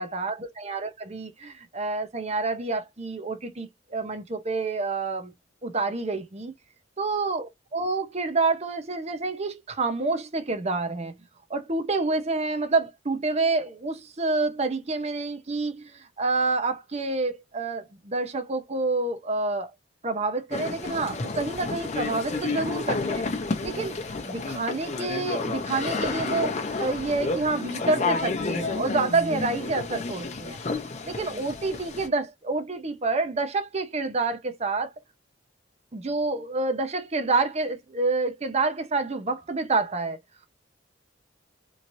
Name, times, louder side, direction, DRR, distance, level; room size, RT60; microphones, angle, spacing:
voice 1, 0.0-5.3 5.6-6.5 7.0-11.1 11.5-19.7 20.0-23.2 23.6-24.0 24.2-30.6 31.0-34.9 35.9-40.2, right 3 dB, 35° right, 0.7 m, -28 dB
sound 1, 20.5-32.1, left 3 dB, 40° left, 0.6 m, -30 dB
3.1 x 2.8 x 2.6 m
head